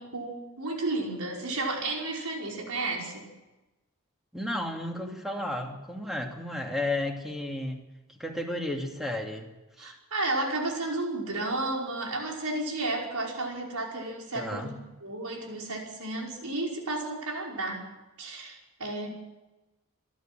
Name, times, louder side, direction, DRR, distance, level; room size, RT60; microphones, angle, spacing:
voice 1, 0.0-3.3 9.8-17.8 18.2-19.1, right 2 dB, 85° right, -1 dB, 5.4 m, -32 dB
voice 2, 4.3-7.8 8.2-9.5 9.8-9.9 14.3-14.8, left 1 dB, ahead, 1 dB, 2.6 m, -33 dB
27.0 x 11.5 x 9.1 m, 1.1 s
head